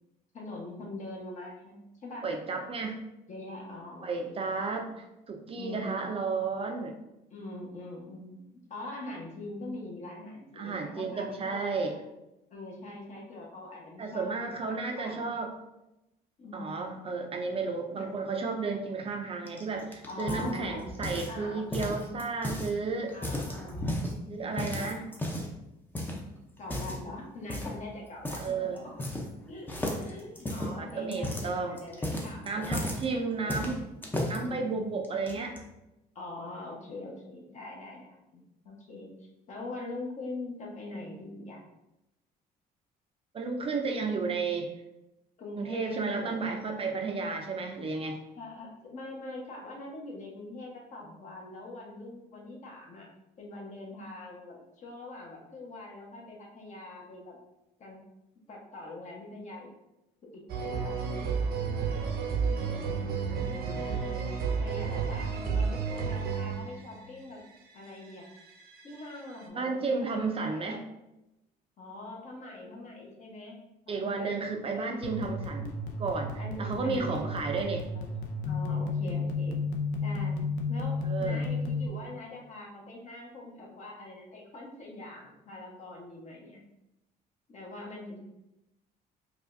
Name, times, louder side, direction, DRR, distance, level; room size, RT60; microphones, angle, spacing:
voice 1, 0.3-2.2 3.3-4.4 4.7-4.9 5.5-6.0 7.3-11.7 12.5-15.3 16.4-17.1 17.9-18.1 20.1-20.9 21.3-22.0 23.1-25.0 26.6-29.0 29.5-29.7 30.0-33.0 33.3-33.6 34.4-35.0 36.1-39.1 39.5-41.6 45.4-46.4 48.4-53.1 53.4-57.4 57.8-58.0 58.5-59.7 60.3-61.7 62.5-63.1 63.8-67.4 67.7-68.3 68.8-70.8 71.8-73.6 73.9-75.0 76.2-77.7 77.9-78.1 78.4-79.6 80.0-80.4 80.7-86.6 87.5-88.2, left 2 dB, 45° left, -1 dB, 1.0 m, -43 dB
voice 2, 2.2-3.0 4.0-7.0 10.6-11.9 14.0-15.5 16.5-23.1 24.3-25.0 28.4-28.8 30.6-31.8 32.5-33.8 34.3-35.6 43.3-44.7 45.5-48.2 62.8-63.8 69.5-70.8 73.9-76.3 76.6-77.8 81.0-81.5, right 4 dB, 35° right, 3 dB, 0.5 m, -33 dB
sound 1, 19.5-21.4 21.7-22.7 23.1-24.1 24.6-25.6 25.9-26.2 26.6-27.0 27.5-27.8 28.2-28.5 28.8-29.4 29.7-33.0 33.5-34.4 35.0-35.6, left 1 dB, 10° left, 0.6 m, -34 dB
sound 2, 60.5-67.0 67.9-69.1 69.4-69.5, right 5 dB, 70° right, 0.7 m, -31 dB
sound 3, 75.0-81.9, left 3 dB, 85° left, 0.6 m, -32 dB
4.8 x 2.4 x 2.6 m, 0.91 s
cardioid pair, 110°, 17 cm